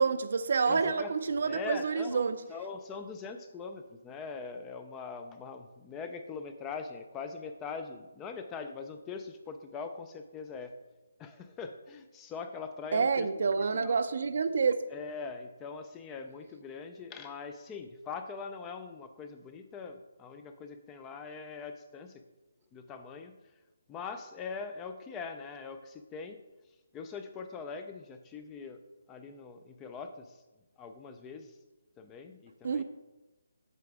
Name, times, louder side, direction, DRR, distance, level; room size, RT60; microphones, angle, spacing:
voice 1, 0.0-2.4 12.9-14.9 32.6-32.8, right 5 dB, 50° right, 0.4 m, -28 dB
voice 2, 0.6-1.1 1.4-10.7 11.2-13.3 13.7-14.0 14.9-22.2 22.7-23.4 23.9-26.4 26.9-28.8 29.1-30.4 30.8-31.6 32.0-32.8, left 5 dB, 10° left, 0.3 m, -42 dB
8.1 x 7.7 x 3.6 m
hypercardioid pair, 170°, 0 cm